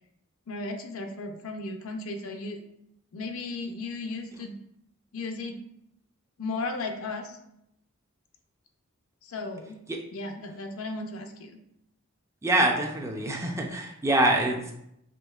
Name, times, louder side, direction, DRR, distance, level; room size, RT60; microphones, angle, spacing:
voice 1, 0.5-2.6 3.1-4.5 5.1-5.6 6.4-7.4 9.2-9.8 10.1-11.5, left 3 dB, 75° left, 5 dB, 0.5 m, -35 dB
voice 2, 12.4-14.7, right 1 dB, 15° right, 1 dB, 0.4 m, -25 dB
5.2 x 3.3 x 2.3 m, 0.79 s
head